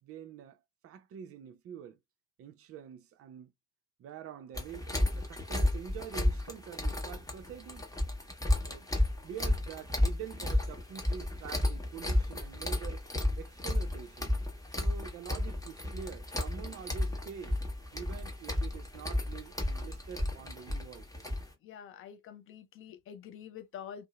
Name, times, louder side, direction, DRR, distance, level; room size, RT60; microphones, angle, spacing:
voice 1, 0.0-2.0 2.4-3.5 4.0-7.9 8.6-8.9 9.2-13.0 13.4-14.4 14.7-17.6 17.9-21.3, right 8 dB, 30° right, 0.5 m, -46 dB
sound 1, 4.5-21.5, left 1 dB, 5° left, 0.8 m, -32 dB
voice 2, 21.6-24.1, left 8 dB, 30° left, 0.3 m, -47 dB
2.6 x 2.1 x 2.2 m
figure-of-eight pair, 45°, 48 cm